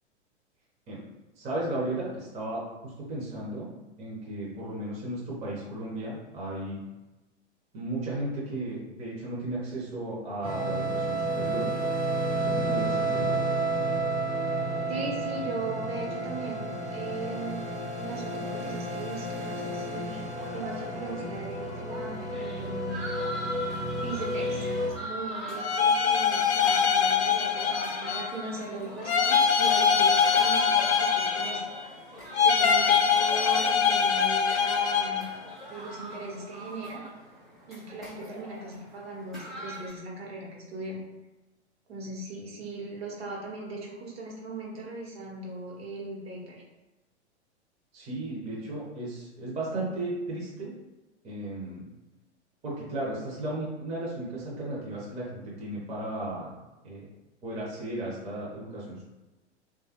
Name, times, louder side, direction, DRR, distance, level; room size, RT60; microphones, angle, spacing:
voice 1, 1.4-3.7 4.0-6.8 7.7-11.7 12.3-13.4 47.9-50.7 51.2-51.9 52.6-56.5 56.8-57.0 57.4-59.0, right 1 dB, 20° right, -5 dB, 0.7 m, -35 dB
sound 1, 10.4-24.9, right 2 dB, 80° right, 1.1 m, -31 dB
voice 2, 14.9-17.6 18.0-20.2 20.5-23.1 24.0-31.6 32.4-35.3 35.7-37.0 37.7-41.0 41.9-46.6, right 2 dB, 60° right, -3 dB, 1.1 m, -38 dB
sound 2, 20.4-39.9, equal, ahead, 0.3 m, -42 dB
sound 3, 25.6-28.4 29.0-31.9 32.3-35.3, left 6 dB, 70° left, 0.5 m, -23 dB
3.3 x 2.3 x 2.8 m, 1.1 s
figure-of-eight pair, 100°, 35 cm